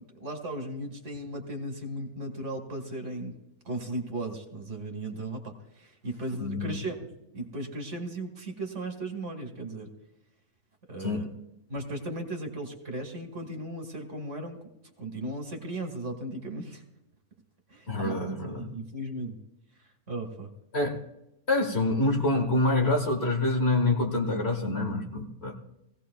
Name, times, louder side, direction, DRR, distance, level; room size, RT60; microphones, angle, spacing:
voice 1, 0.0-3.3 3.7-7.1 7.3-9.9 10.9-11.3 11.7-14.6 15.0-16.8 17.7-18.2 18.6-19.4 20.1-20.5, right 1 dB, 55° right, 4 dB, 2.0 m, -36 dB
voice 2, 6.4-6.7 11.0-11.2 17.9-18.7 20.7-21.0 21.5-25.5, left 2 dB, 45° left, 3 dB, 1.8 m, -26 dB
20.0 x 16.5 x 2.3 m, 0.87 s
omnidirectional pair, 1.5 m